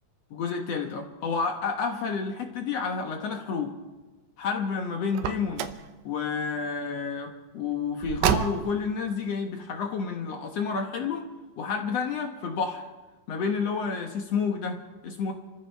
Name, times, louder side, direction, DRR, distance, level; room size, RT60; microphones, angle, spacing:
voice 1, 0.3-3.7 4.4-5.7 6.0-11.2 11.6-12.8 13.3-15.3, left 5 dB, 65° left, 3 dB, 1.6 m, -30 dB
Car, 5.1-5.9 8.0-8.9, right 10 dB, 85° right, 2.7 m, -28 dB
29.0 x 14.5 x 3.4 m, 1.2 s
omnidirectional pair, 4.3 m